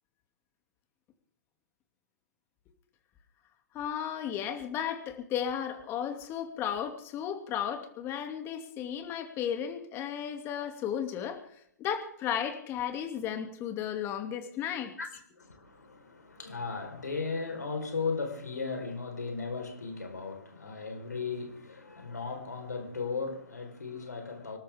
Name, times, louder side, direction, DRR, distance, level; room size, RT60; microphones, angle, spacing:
voice 1, 3.7-11.4 11.8-14.9, left 9 dB, 25° left, 2.6 m, -34 dB
voice 2, 15.4-24.6, left 4 dB, 85° left, 4.5 m, -36 dB
25.5 x 13.0 x 3.7 m
hypercardioid pair, 130°, 9 cm